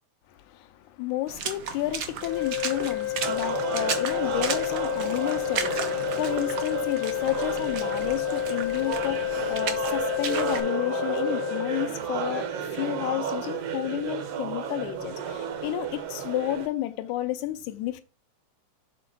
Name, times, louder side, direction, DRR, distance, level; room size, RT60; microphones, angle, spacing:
voice 1, 0.3-18.0, left 14 dB, 85° left, 2.0 m, -31 dB
Water / Splash splatter, 1.3-10.6, right 6 dB, 80° right, 1.0 m, -35 dB
sound 1, 2.2-11.9, left 15 dB, 65° left, 1.3 m, -30 dB
sound 2, 3.2-16.7, right 7 dB, 65° right, 1.8 m, -33 dB
6.7 x 3.9 x 5.7 m
omnidirectional pair, 3.5 m